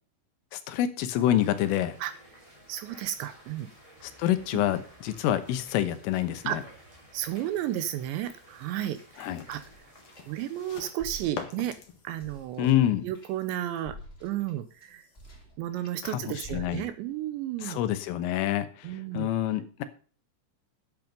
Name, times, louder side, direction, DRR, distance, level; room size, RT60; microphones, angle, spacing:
voice 1, 0.5-2.0 4.0-6.6 9.2-9.4 12.6-13.1 16.0-16.9 17.6-19.8, left 12 dB, 85° left, 11 dB, 3.7 m, -27 dB
sound 1, 1.2-10.8, right 1 dB, 10° right, 2.7 m, -54 dB
voice 2, 2.7-3.7 4.5-4.6 6.4-6.6 7.1-9.6 10.3-11.8 12.0-12.7 13.0-15.1 15.6-17.8 18.8-19.3, right 12 dB, 80° right, 12 dB, 2.8 m, -33 dB
sound 2, 8.0-13.8, left 7 dB, 60° left, 3.0 m, -47 dB
sound 3, 8.3-10.6 10.9-16.0 16.4-17.1, right 2 dB, 20° left, 1.7 m, -49 dB
10.5 x 8.3 x 5.2 m, 0.39 s
omnidirectional pair, 5.7 m